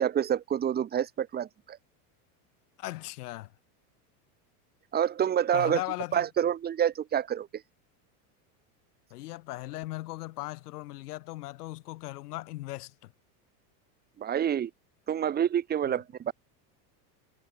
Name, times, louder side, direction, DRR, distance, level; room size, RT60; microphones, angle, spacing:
voice 1, 0.0-1.8 4.9-5.8 6.1-7.5 14.2-14.7 15.1-16.3, right 9 dB, 20° right, 1.3 m, -27 dB
voice 2, 2.8-3.5 5.5-6.2 9.1-13.1 15.8-15.9, left 18 dB, 85° left, 6.4 m, -38 dB
supercardioid pair, 145°, 45 cm